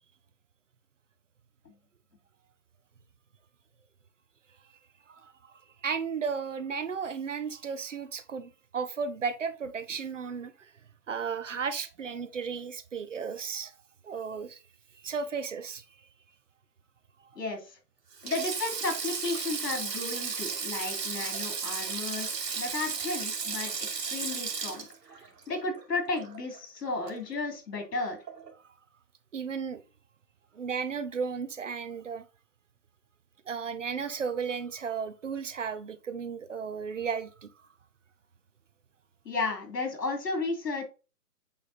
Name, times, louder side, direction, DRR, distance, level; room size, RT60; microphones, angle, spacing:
voice 1, 5.1-10.7 11.1-13.7 14.0-14.6 15.0-15.8 29.3-29.8 30.5-32.3 33.5-37.5, right 6 dB, 50° right, 0.7 m, -34 dB
voice 2, 17.3-17.8 18.2-24.9 25.5-28.2 39.2-40.8, left 3 dB, 75° left, 2.9 m, -33 dB
Sink (filling or washing), 18.1-26.6 26.9-27.1 28.3-28.5, right 5 dB, 80° right, 2.2 m, -34 dB
8.4 x 3.4 x 4.0 m
hypercardioid pair, 170°, 49 cm